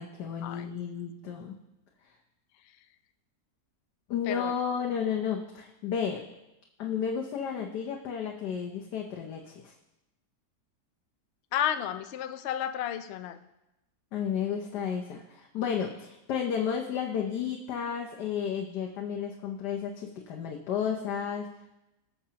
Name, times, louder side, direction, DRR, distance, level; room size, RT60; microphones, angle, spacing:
voice 1, 0.0-1.5 4.1-6.2 6.8-9.7 14.1-21.5, left 7 dB, 90° left, 1 dB, 1.4 m, -32 dB
voice 2, 11.5-13.4, left 10 dB, 75° left, 9 dB, 0.6 m, -32 dB
19.0 x 6.9 x 2.8 m, 0.94 s
omnidirectional pair, 1.7 m